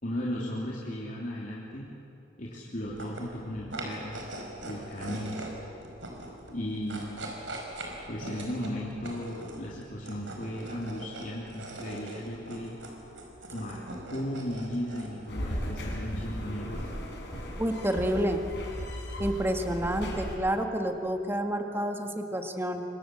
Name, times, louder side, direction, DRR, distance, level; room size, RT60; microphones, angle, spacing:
voice 1, 0.0-1.9 2.4-4.2 4.6-5.4 6.5-7.2 8.1-12.8 13.5-16.9, equal, 45° left, -5 dB, 3.3 m, -36 dB
sound 1, 2.8-18.2, right 1 dB, 75° right, 5.2 m, -43 dB
sound 2, 15.3-20.4, equal, 60° left, 6.1 m, -36 dB
voice 2, 17.6-18.4 19.2-22.8, right 1 dB, 10° right, 4 dB, 1.8 m, -29 dB
28.5 x 25.0 x 7.9 m, 2.8 s
head